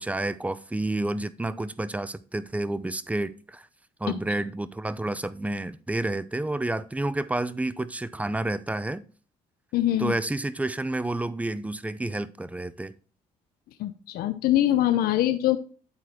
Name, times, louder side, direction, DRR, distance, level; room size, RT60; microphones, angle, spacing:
voice 1, 0.0-3.7 4.0-9.0 10.0-12.9, right 2 dB, 10° right, 0.6 m, -30 dB
voice 2, 9.7-10.1 13.8-15.6, left 13 dB, 80° left, 0.6 m, -23 dB
9.6 x 4.1 x 4.4 m
supercardioid pair, 70°, 15 cm